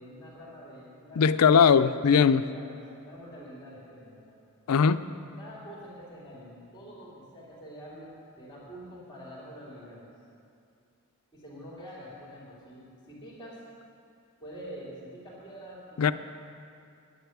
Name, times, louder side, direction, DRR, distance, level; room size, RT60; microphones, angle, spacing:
voice 1, 0.0-1.8 2.1-4.3 5.4-10.1 11.3-13.6 14.4-16.1, equal, 20° left, -9 dB, 3.0 m, -46 dB
voice 2, 1.2-2.4 4.7-5.0 16.0-16.1, left 6 dB, 85° left, 13 dB, 0.4 m, -20 dB
10.0 x 8.1 x 9.3 m, 2.5 s
head